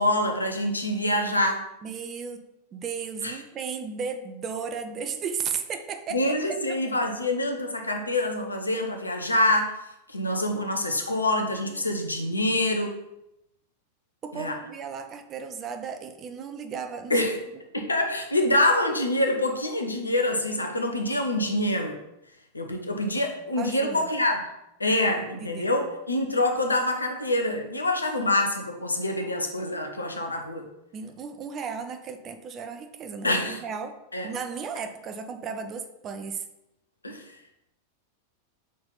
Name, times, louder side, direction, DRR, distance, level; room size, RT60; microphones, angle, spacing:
voice 1, 0.0-1.6 3.2-3.4 6.1-9.8 10.1-13.0 14.3-14.6 17.1-17.4 17.7-22.0 22.5-24.4 24.8-30.6 33.2-33.6 34.1-34.3 37.0-37.2, left 1 dB, 80° left, 4 dB, 0.8 m, -26 dB
voice 2, 1.8-2.4 2.7-6.2 6.5-6.8 11.7-11.8 14.2-17.2 23.6-24.1 25.4-25.7 30.9-33.9 34.2-36.5, right 6 dB, 30° right, 7 dB, 0.7 m, -35 dB
6.2 x 4.3 x 4.0 m, 0.87 s
figure-of-eight pair, 90°, 0 cm